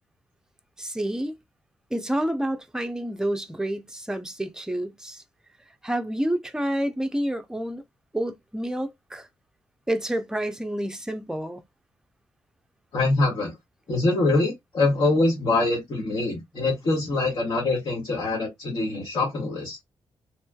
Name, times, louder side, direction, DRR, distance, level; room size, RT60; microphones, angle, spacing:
voice 1, 0.8-1.4 1.9-5.2 5.8-7.8 8.1-9.3 9.9-11.6, right 1 dB, 5° right, 0.5 m, -29 dB
voice 2, 12.9-13.6 13.9-19.8, left 2 dB, 50° left, 1.3 m, -24 dB
3.1 x 3.0 x 2.3 m
cardioid pair, 80°, 11 cm